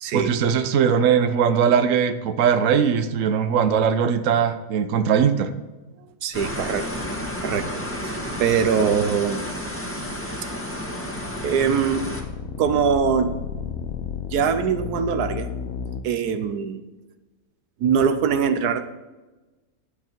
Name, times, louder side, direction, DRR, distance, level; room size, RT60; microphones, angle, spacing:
voice 1, 0.1-5.5, right 7 dB, 60° right, 8 dB, 1.1 m, -20 dB
voice 2, 6.2-6.9 7.4-7.7 8.0-9.5 11.4-12.1 12.6-13.4 14.3-15.5 16.0-16.8 17.8-18.8, right 7 dB, 85° right, 9 dB, 1.3 m, -22 dB
sound 1, 6.3-12.2, equal, 10° left, 1.6 m, -31 dB
sound 2, 11.0-16.0, left 6 dB, 70° left, 1.3 m, -32 dB
12.0 x 8.1 x 4.5 m, 1.2 s
omnidirectional pair, 1.6 m